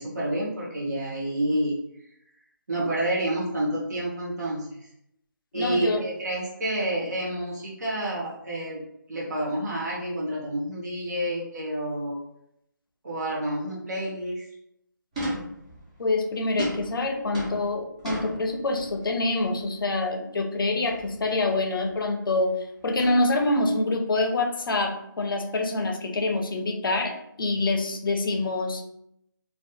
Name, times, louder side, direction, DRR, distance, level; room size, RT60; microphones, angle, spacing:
voice 1, 0.0-1.8 2.7-4.9 5.5-12.2 13.0-14.5, right 1 dB, 55° right, -5 dB, 0.7 m, -29 dB
voice 2, 5.5-6.0 16.0-22.6 22.8-28.8, left 2 dB, 90° left, 3 dB, 0.5 m, -26 dB
sound 1, 15.1-16.0 16.6-19.1 19.4-19.7 20.8-21.4 21.7-22.1 23.0-23.7, equal, 15° right, 0.5 m, -36 dB
2.3 x 2.2 x 2.6 m, 0.78 s
hypercardioid pair, 170°, 11 cm